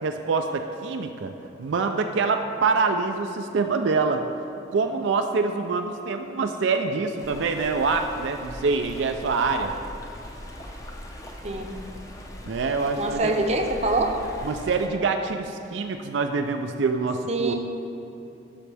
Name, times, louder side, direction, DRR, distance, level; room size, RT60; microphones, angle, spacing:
voice 1, 0.0-1.3 1.6-4.2 4.7-9.7 12.5-13.3 14.5-17.5, right 4 dB, 75° right, 5 dB, 0.4 m, -25 dB
Stream, 7.2-14.9, left 1 dB, 15° left, 0.6 m, -40 dB
voice 2, 11.4-11.8 13.0-14.1 17.3-17.5, right 2 dB, 35° right, 3 dB, 0.7 m, -24 dB
12.5 x 6.2 x 3.4 m, 2.9 s
head